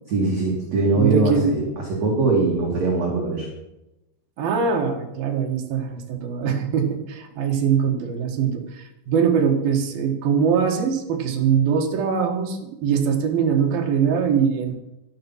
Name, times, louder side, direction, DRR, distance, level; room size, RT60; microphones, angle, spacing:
voice 1, 0.1-3.5, right 3 dB, 45° right, -3 dB, 2.9 m, -21 dB
voice 2, 0.9-1.6 4.4-14.7, right 7 dB, 60° right, 3 dB, 2.8 m, -22 dB
12.5 x 11.5 x 5.6 m, 0.91 s
omnidirectional pair, 5.4 m